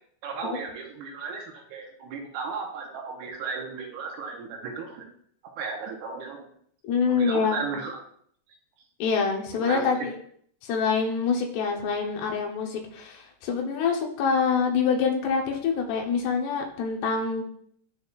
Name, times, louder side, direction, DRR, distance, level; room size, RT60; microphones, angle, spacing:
voice 1, 0.2-5.1 5.6-6.5 7.1-8.0 9.5-9.9, right 5 dB, 75° right, 1 dB, 2.7 m, -35 dB
voice 2, 6.8-7.6 9.0-10.1 10.6-17.4, left 5 dB, 80° left, 2 dB, 3.0 m, -26 dB
11.0 x 4.2 x 2.4 m, 0.63 s
omnidirectional pair, 4.8 m